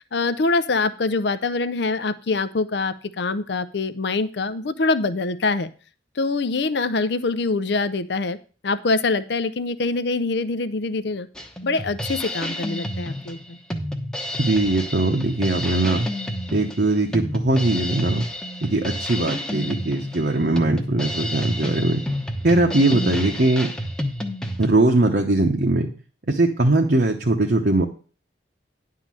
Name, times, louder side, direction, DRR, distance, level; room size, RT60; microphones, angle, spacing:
voice 1, 0.0-5.7 6.2-8.4 8.6-11.3 11.6-13.6, left 3 dB, 60° left, 13 dB, 0.5 m, -24 dB
Drum kit, 11.3-24.7, left 1 dB, 5° left, 0.9 m, -30 dB
voice 2, 14.4-16.1 16.5-18.3 18.6-22.0 22.4-23.7 24.6-25.9 26.3-27.9, right 2 dB, 55° right, 1 dB, 0.9 m, -20 dB
10.5 x 3.8 x 7.5 m, 0.38 s
head